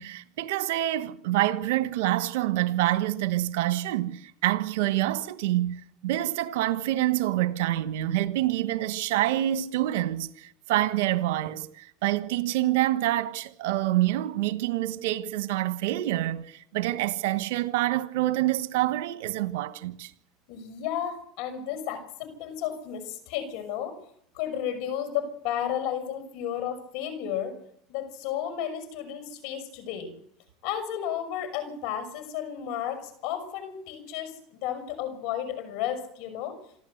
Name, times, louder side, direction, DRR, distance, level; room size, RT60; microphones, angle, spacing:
voice 1, 0.0-20.1, right 14 dB, 80° right, 1.2 m, -27 dB
voice 2, 20.5-23.9 24.3-27.6 27.9-30.1 30.6-36.6, left 10 dB, 70° left, 5.9 m, -33 dB
27.0 x 13.0 x 8.0 m
supercardioid pair, 95°, 0 cm